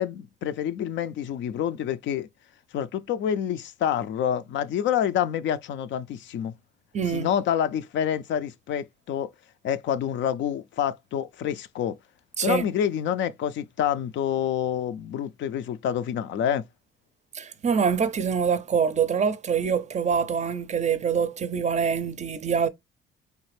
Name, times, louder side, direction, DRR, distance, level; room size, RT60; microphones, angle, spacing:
voice 1, 0.0-2.3 2.7-6.5 7.1-9.3 9.6-12.0 12.4-16.6, left 9 dB, 70° left, 0.4 m, -27 dB
voice 2, 6.9-7.3 12.4-12.6 17.3-22.7, right 6 dB, 35° right, 0.4 m, -25 dB
3.2 x 2.5 x 3.1 m
cardioid pair, 90°, 20 cm